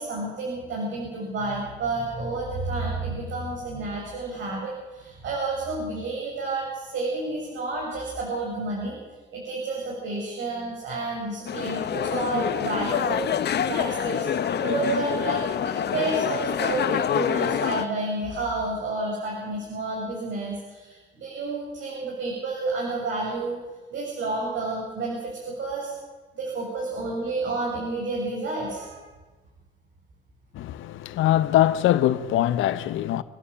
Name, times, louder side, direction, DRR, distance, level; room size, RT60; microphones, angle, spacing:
voice 1, 0.0-9.0 9.3-14.3 14.6-15.4 15.9-23.6 23.9-25.9 26.3-29.0, right 3 dB, 70° right, 7.7 m, -30 dB
sound 1, 11.5-17.9, left 9 dB, 55° left, 1.0 m, -26 dB
voice 2, 30.5-33.2, left 13 dB, 85° left, 0.9 m, -22 dB
27.5 x 11.5 x 8.7 m
cardioid pair, 90°, 20 cm